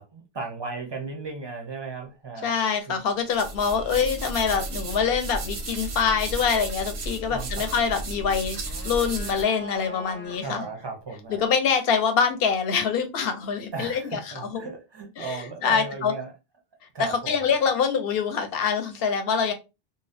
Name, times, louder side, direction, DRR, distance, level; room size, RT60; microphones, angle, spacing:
voice 1, 0.0-2.5 2.9-3.0 7.3-7.9 10.2-11.4 13.7-16.3 16.9-17.4, right 4 dB, 40° right, 0.4 m, -36 dB
voice 2, 2.4-8.6 8.8-10.7 11.4-14.6 15.2-16.1 17.0-19.5, left 6 dB, 70° left, 0.8 m, -25 dB
sound 1, 3.3-9.4, right 2 dB, 85° right, 0.9 m, -34 dB
sound 2, 8.4-10.7, left 1 dB, 15° left, 0.5 m, -42 dB
2.5 x 2.0 x 2.5 m
omnidirectional pair, 1.1 m